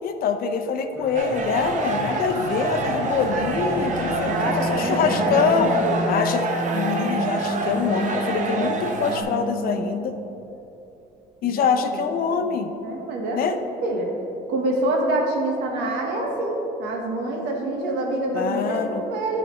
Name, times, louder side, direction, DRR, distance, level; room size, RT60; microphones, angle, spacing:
voice 1, 0.0-5.7 6.1-6.5 6.7-10.2 11.4-12.7 13.3-13.6 18.3-19.0, left 6 dB, 60° left, 7 dB, 0.6 m, -25 dB
sound 1, 1.0-10.2, left 1 dB, 5° right, 1.0 m, -30 dB
sound 2, 1.1-9.2, right 3 dB, 45° right, 0.8 m, -27 dB
voice 2, 4.2-6.1 11.4-12.0 12.3-12.5 12.8-14.1 14.5-19.4, right 2 dB, 90° right, 0 dB, 1.2 m, -26 dB
11.0 x 4.9 x 3.0 m, 2.9 s
cardioid pair, 110°, 17 cm